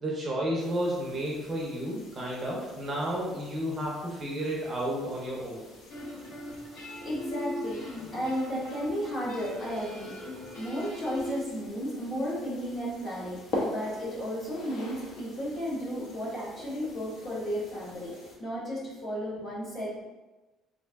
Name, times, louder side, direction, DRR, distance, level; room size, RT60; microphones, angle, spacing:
voice 1, 0.0-5.6, equal, 25° right, -3 dB, 0.5 m, -32 dB
sound 1, 0.6-18.4, left 1 dB, 50° left, 0.7 m, -44 dB
voice 2, 5.5-20.0, equal, 25° left, -6 dB, 1.1 m, -34 dB
sound 2, 5.9-11.4, left 1 dB, 75° left, 1.2 m, -40 dB
3.1 x 2.5 x 3.4 m, 1.1 s
cardioid pair, 175°, 0 cm